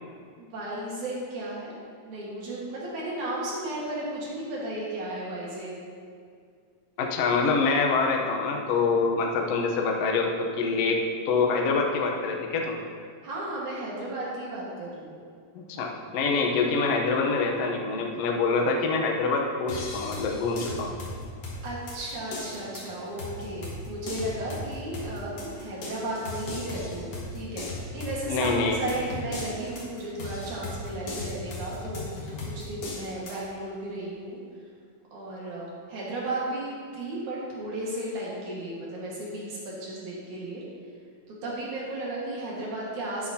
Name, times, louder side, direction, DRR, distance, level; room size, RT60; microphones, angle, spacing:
voice 1, 0.4-1.7 2.0-5.8 13.2-15.2 21.6-34.4 35.1-40.6 41.3-43.3, right 1 dB, 60° right, -5 dB, 2.9 m, -34 dB
voice 2, 7.0-11.0 11.2-12.8 15.5-20.9 28.3-28.8, left 4 dB, 80° left, 1 dB, 1.4 m, -25 dB
sound 1, 19.7-33.4, left 2 dB, 50° left, 2.3 m, -37 dB
13.0 x 9.2 x 2.8 m, 2.2 s
omnidirectional pair, 4.2 m